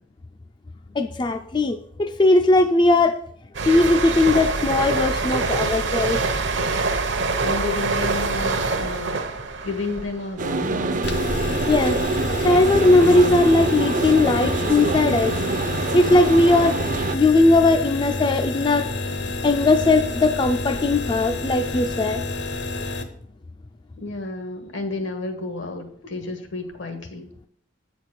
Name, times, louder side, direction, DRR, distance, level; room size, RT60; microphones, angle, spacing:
voice 1, 0.9-3.2 3.7-6.2 11.7-12.0 12.4-15.3 15.9-16.8 17.1-18.9 19.4-22.2, left 2 dB, 25° left, 7 dB, 0.4 m, -18 dB
sound 1, 3.5-11.0 11.3-11.6, right 3 dB, 65° right, 0.8 m, -25 dB
voice 2, 7.4-9.2 9.6-11.1 24.0-27.3, left 3 dB, 75° left, 6 dB, 1.4 m, -31 dB
sound 2, 10.4-17.1, right 3 dB, 45° right, 0.5 m, -25 dB
sound 3, 11.0-23.0, left 2 dB, 60° left, 0.9 m, -29 dB
8.5 x 4.2 x 6.3 m, 0.63 s
head